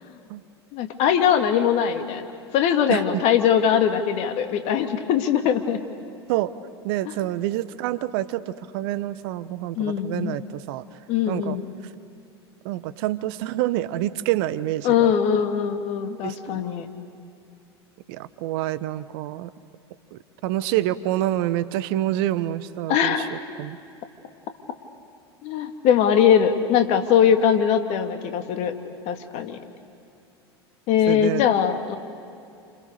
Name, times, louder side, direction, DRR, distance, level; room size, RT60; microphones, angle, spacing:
voice 1, 0.7-2.2 2.5-5.8 7.1-7.2 9.8-10.4 11.1-11.6 14.8-16.9 22.9-23.3 25.4-28.7 29.1-29.6 30.9-32.0, left 8 dB, 50° left, 7 dB, 2.5 m, -21 dB
voice 2, 6.8-10.8 11.3-11.6 12.6-15.1 16.2-16.6 18.1-19.5 20.1-23.8 31.1-31.5, right 14 dB, 60° right, 15 dB, 1.2 m, -27 dB
29.5 x 28.0 x 6.8 m, 2.6 s
hypercardioid pair, 85°, 14 cm